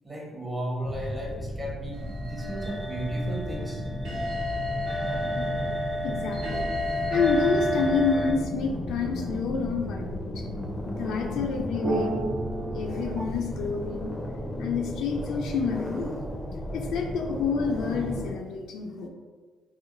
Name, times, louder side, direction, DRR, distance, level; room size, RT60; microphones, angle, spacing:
voice 1, 0.0-3.8 5.0-5.2, right 1 dB, 20° right, -2 dB, 0.9 m, -34 dB
sound 1, 0.8-18.3, left 1 dB, 10° left, 0.5 m, -34 dB
sound 2, 1.9-8.3, equal, 70° right, 1.1 m, -31 dB
voice 2, 6.0-6.7 7.1-10.4 11.0-12.2 12.7-14.1 14.6-16.1 16.7-19.1, left 5 dB, 80° left, 2 dB, 0.4 m, -28 dB
sound 3, 8.2-8.8 11.8-13.3, right 4 dB, 45° right, 0.4 m, -33 dB
3.0 x 2.0 x 3.7 m, 1.5 s
cardioid pair, 90°, 0 cm